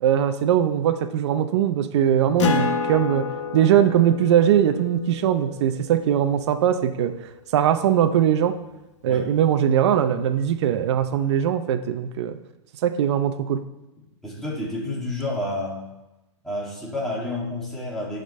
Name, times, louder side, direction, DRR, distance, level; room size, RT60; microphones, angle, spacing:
voice 1, 0.0-3.2 3.5-7.1 7.5-8.5 9.0-12.3 12.8-13.6, right 10 dB, 60° right, 8 dB, 0.7 m, -20 dB
Acoustic guitar, 2.4-7.4, left 5 dB, 70° left, 1.1 m, -29 dB
voice 2, 14.2-15.8 16.4-18.2, left 1 dB, 5° left, -6 dB, 2.3 m, -29 dB
14.5 x 5.2 x 3.2 m, 0.98 s
hypercardioid pair, 150°, 16 cm